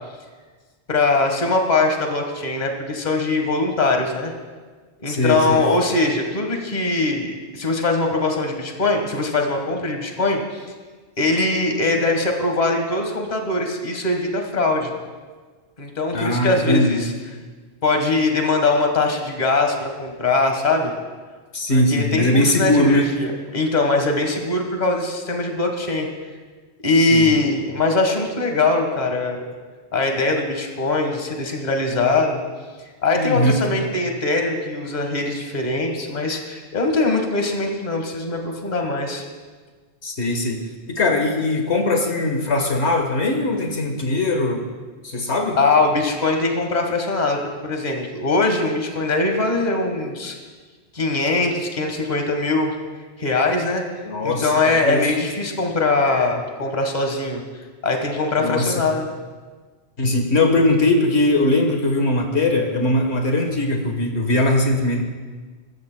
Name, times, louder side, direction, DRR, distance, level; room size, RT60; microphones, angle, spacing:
voice 1, 0.9-4.3 5.0-10.7 11.2-14.9 15.8-17.1 17.8-20.9 21.7-26.1 26.8-29.4 29.9-32.4 33.0-39.2 45.6-50.3 50.9-52.8 53.2-53.8 54.2-57.4 57.8-59.1, left 3 dB, 40° left, 3 dB, 1.5 m, -21 dB
voice 2, 5.1-5.6 16.1-17.0 21.5-23.1 27.1-27.4 33.1-33.6 40.0-40.6 40.9-44.7 45.0-45.6 54.0-55.1 58.4-58.8 60.0-65.0, left 1 dB, 75° left, 3 dB, 1.6 m, -20 dB
23.0 x 13.5 x 2.2 m, 1.4 s
omnidirectional pair, 1.1 m